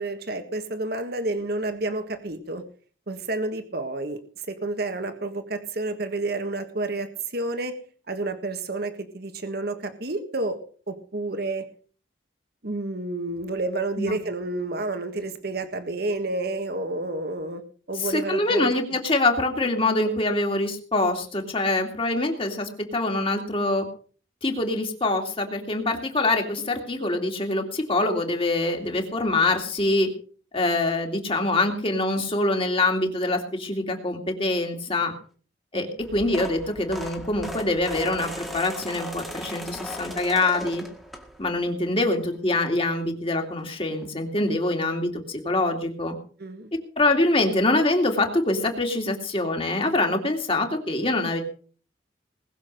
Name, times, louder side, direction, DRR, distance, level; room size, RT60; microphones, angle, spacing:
voice 1, 0.0-2.6 3.1-4.2 4.5-7.7 8.1-10.6 10.9-11.6 12.6-17.6 17.9-18.7 35.7-35.9 46.4-46.7, right 2 dB, 55° right, 8 dB, 1.5 m, -30 dB
voice 2, 18.0-23.9 24.4-30.1 30.5-35.1 35.7-40.8 41.4-46.1 47.0-51.4, left 2 dB, 30° left, 3 dB, 2.5 m, -24 dB
sound 1, 36.0-41.6 42.1-42.4 43.6-43.7 43.9-44.0 44.4-44.5, equal, ahead, 1.9 m, -37 dB
20.0 x 7.0 x 6.5 m, 0.43 s
head